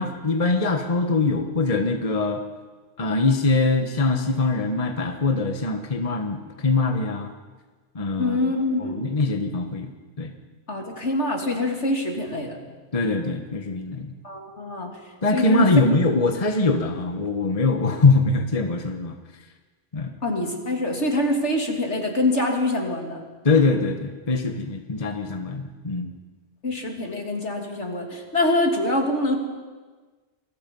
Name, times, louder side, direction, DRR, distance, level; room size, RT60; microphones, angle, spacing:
voice 1, 0.0-2.4 3.0-7.3 7.9-8.5 8.8-9.9 10.2-10.3 12.9-14.1 15.2-19.1 19.9-20.1 23.4-26.1, left 3 dB, 30° left, 6 dB, 1.3 m, -22 dB
voice 2, 8.2-9.1 10.7-12.6 14.2-14.9 15.3-15.6 20.2-23.2 26.6-29.4, left 1 dB, 70° left, 2 dB, 3.3 m, -25 dB
28.0 x 22.5 x 5.5 m, 1.4 s
omnidirectional pair, 1.2 m